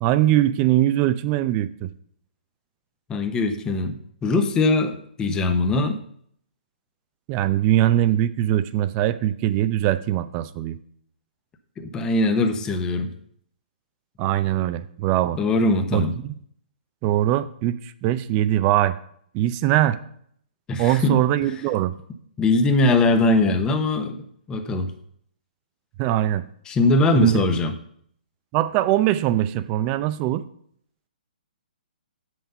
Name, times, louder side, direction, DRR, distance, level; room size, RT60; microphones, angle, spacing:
voice 1, 0.0-1.9 7.3-10.8 14.2-15.4 15.9-16.3 17.0-19.0 19.3-20.0 20.8-21.9 26.0-26.4 27.1-27.5 28.5-30.4, right 13 dB, 25° right, 14 dB, 0.5 m, -21 dB
voice 2, 3.1-6.0 11.8-13.1 15.4-16.1 20.7-21.5 22.4-24.9 26.7-27.7, left 2 dB, 15° left, 6 dB, 0.9 m, -21 dB
7.2 x 5.9 x 5.5 m, 0.65 s
hypercardioid pair, 145°, 5 cm